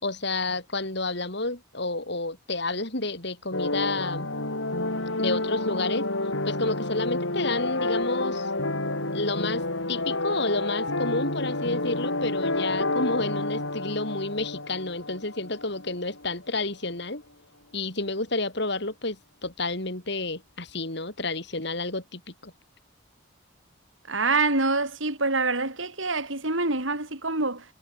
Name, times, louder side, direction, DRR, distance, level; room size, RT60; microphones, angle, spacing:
voice 1, 0.0-4.3 5.2-6.1 6.5-8.5 9.1-17.2 17.7-22.5, left 2 dB, 60° left, 4.4 m, -30 dB
sound 1, 3.5-16.3, left 2 dB, 80° left, 6.9 m, -29 dB
voice 2, 24.1-27.6, right 3 dB, 75° right, 6.2 m, -26 dB
head